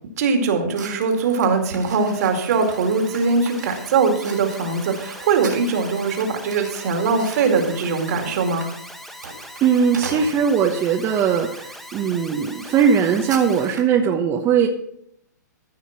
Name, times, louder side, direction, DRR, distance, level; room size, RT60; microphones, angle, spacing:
voice 1, 0.2-8.8, right 4 dB, 55° right, 4 dB, 2.3 m, -21 dB
sound 1, 0.7-10.9 11.5-11.7 12.1-12.2 12.5-14.0, right 4 dB, 75° right, 3.3 m, -40 dB
Alarm, 1.5-13.8, equal, ahead, 1.1 m, -41 dB
voice 2, 9.6-14.7, right 7 dB, 25° right, 2 dB, 1.1 m, -19 dB
14.5 x 5.8 x 5.8 m, 0.75 s
hypercardioid pair, 120°, 10 cm